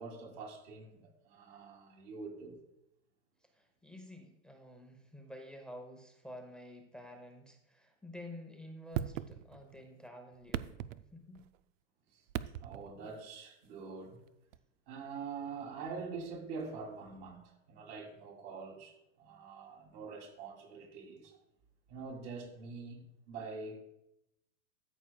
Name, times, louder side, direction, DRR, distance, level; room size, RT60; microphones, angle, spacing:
voice 1, 0.0-2.6 12.1-12.2 12.6-14.2 14.9-21.4 21.9-23.8, right 4 dB, 45° right, 2.9 m, -45 dB
voice 2, 3.5-10.8 11.1-11.4, left 1 dB, ahead, 0.7 m, -50 dB
sound 1, 8.9-9.8 10.3-11.6 12.3-13.0 14.5-14.6, right 11 dB, 75° right, 0.5 m, -39 dB
13.5 x 7.0 x 2.3 m
supercardioid pair, 135°, 39 cm